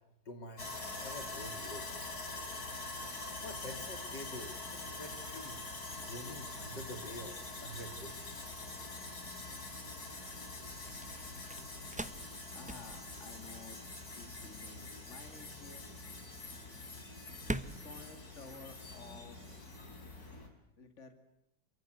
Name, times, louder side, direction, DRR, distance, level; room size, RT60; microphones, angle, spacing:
voice 1, 0.3-1.9 3.4-5.6 5.9-8.5, left 1 dB, 80° left, 7 dB, 3.8 m, -47 dB
Sawing, 0.6-20.5, left 2 dB, 60° left, 4.6 m, -45 dB
sound 1, 8.1-19.3, right 1 dB, 5° right, 0.7 m, -47 dB
voice 2, 12.4-15.8 17.6-19.8 20.8-21.1, left 4 dB, 40° left, 8 dB, 2.8 m, -53 dB
28.5 x 23.5 x 8.1 m, 0.82 s
omnidirectional pair, 1.9 m